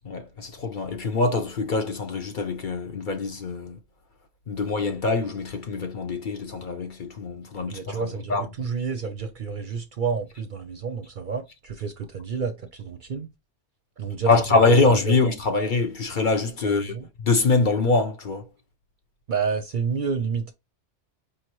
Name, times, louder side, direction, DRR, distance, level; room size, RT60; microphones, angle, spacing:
voice 1, 0.0-3.8 4.5-8.0 8.3-8.4 14.3-18.5, left 3 dB, 50° left, 0.7 m, -24 dB
voice 2, 7.7-13.3 14.0-14.8 15.1-15.2 16.6-17.1 19.3-20.5, right 5 dB, 50° right, 0.6 m, -30 dB
5.2 x 2.8 x 3.0 m
omnidirectional pair, 1.2 m